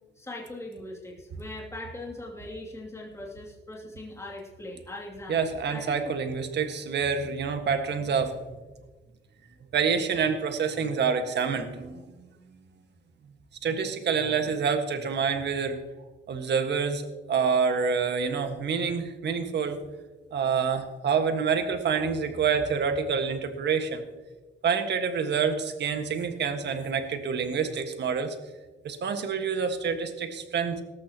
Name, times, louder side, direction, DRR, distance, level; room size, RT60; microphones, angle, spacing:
voice 1, 0.2-5.4 5.7-6.1, left 1 dB, 15° left, -3 dB, 2.8 m, -40 dB
voice 2, 5.3-8.3 9.7-12.3 13.6-15.8 16.3-19.8 20.3-24.0 24.6-28.3 28.8-30.8, right 6 dB, 60° right, 6 dB, 1.7 m, -27 dB
18.0 x 14.0 x 3.0 m, 1.2 s
cardioid pair, 90°, 20 cm